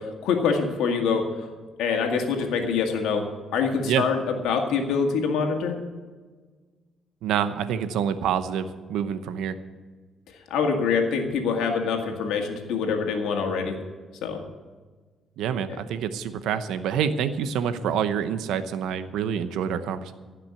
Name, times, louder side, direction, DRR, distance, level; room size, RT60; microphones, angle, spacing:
voice 1, 0.0-1.5 1.8-5.8 10.5-13.8 14.2-14.4 15.7-15.8, left 5 dB, 90° left, 3 dB, 2.0 m, -25 dB
voice 2, 7.2-9.6 15.4-20.1, right 8 dB, 85° right, 11 dB, 0.8 m, -27 dB
15.5 x 6.0 x 9.7 m, 1.4 s
cardioid pair, 90°, 0 cm